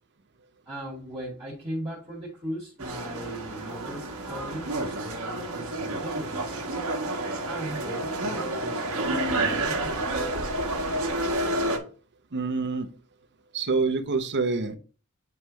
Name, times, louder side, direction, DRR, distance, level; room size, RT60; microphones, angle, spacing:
voice 1, 0.7-6.6 7.4-10.2, right 1 dB, 25° right, -5 dB, 2.2 m, -38 dB
sound 1, 2.8-11.8, right 2 dB, 75° right, 1.5 m, -29 dB
voice 2, 12.3-12.9 13.5-14.8, right 4 dB, 55° right, 7 dB, 0.8 m, -26 dB
9.4 x 3.5 x 3.1 m, 0.37 s
head